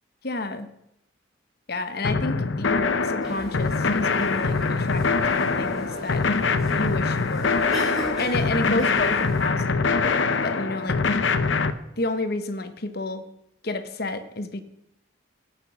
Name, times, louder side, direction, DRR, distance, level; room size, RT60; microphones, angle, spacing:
voice 1, 0.2-0.7 1.7-6.3 6.8-7.6 8.2-11.2 12.0-13.3 13.6-14.6, left 2 dB, 50° left, 9 dB, 1.0 m, -30 dB
sound 1, 2.0-11.7, left 4 dB, 70° left, 0.7 m, -24 dB
sound 2, 3.2-9.5, equal, ahead, 4.6 m, -37 dB
17.5 x 6.1 x 5.8 m, 0.83 s
head